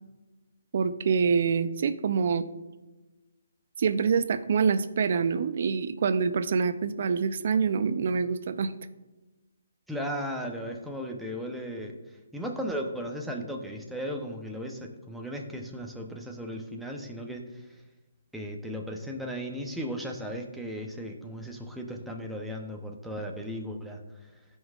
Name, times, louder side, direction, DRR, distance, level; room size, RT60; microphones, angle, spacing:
voice 1, 0.7-2.5 3.8-8.7, right 5 dB, 50° right, 12 dB, 0.5 m, -26 dB
voice 2, 9.9-11.9 12.3-17.6 18.3-24.0, equal, ahead, 0 dB, 0.7 m, -36 dB
16.0 x 5.5 x 2.4 m, 1.1 s
hypercardioid pair, 155°, 0 cm